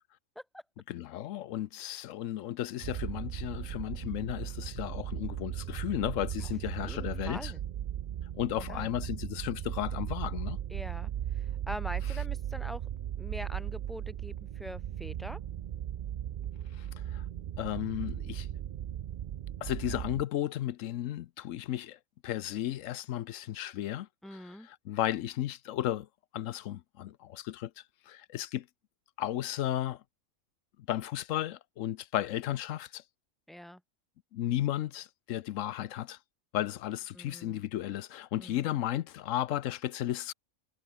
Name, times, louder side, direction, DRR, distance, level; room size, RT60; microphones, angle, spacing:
voice 1, 0.9-7.5 8.4-10.6 16.8-17.2 17.6-18.5 19.6-26.1 26.3-28.7 29.2-30.0 30.9-33.0 34.3-36.2 36.5-40.3, left 13 dB, 75° left, 1.0 m, -34 dB
sound 1, 2.8-20.2, right 10 dB, 90° right, 0.4 m, -37 dB
voice 2, 6.8-7.6 8.6-8.9 10.7-12.8 13.2-15.4 24.2-24.7 33.5-33.8 37.1-37.6 38.4-38.7, equal, ahead, 0.9 m, -43 dB
omnidirectional pair, 1.4 m